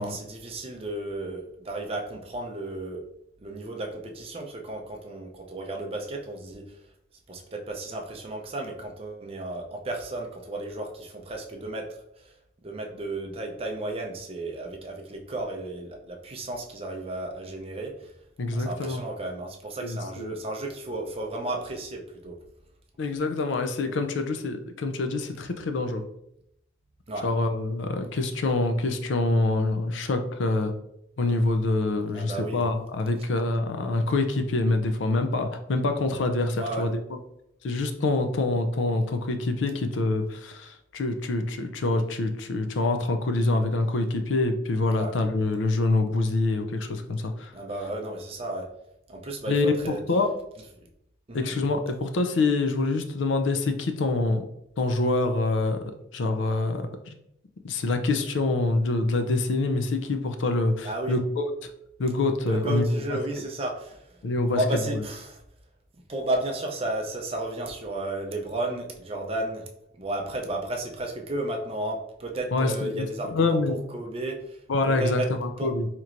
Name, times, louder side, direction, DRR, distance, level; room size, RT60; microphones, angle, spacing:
voice 1, 0.0-3.0 3.4-6.7 7.3-11.9 12.2-12.3 12.6-18.1 18.5-22.4 27.1-27.3 32.1-32.6 36.5-36.9 44.9-45.1 47.5-48.7 49.1-50.0 51.3-51.5 60.8-61.2 62.4-64.1 64.5-65.4 66.1-69.7 70.0-73.6 73.9-74.6 74.8-75.3 75.6-75.7, right 2 dB, 30° right, 2 dB, 0.5 m, -33 dB
voice 2, 18.4-19.0 19.8-20.3 23.0-26.0 27.2-30.7 31.2-37.0 37.6-47.5 49.5-50.3 51.3-54.4 54.8-55.8 56.1-57.2 57.6-61.5 62.0-62.8 63.1-63.2 64.2-64.6 64.9-65.0 72.5-73.8 74.7-75.9, left 2 dB, 75° left, 7 dB, 0.4 m, -26 dB
4.4 x 2.9 x 2.5 m, 0.78 s
head